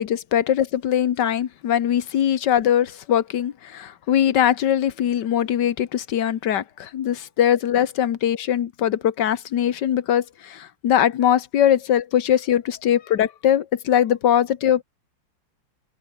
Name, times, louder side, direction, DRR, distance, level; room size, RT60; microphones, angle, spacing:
voice 1, 0.0-14.8, left 10 dB, 60° left, 1.6 m, -21 dB
omnidirectional pair, 2.4 m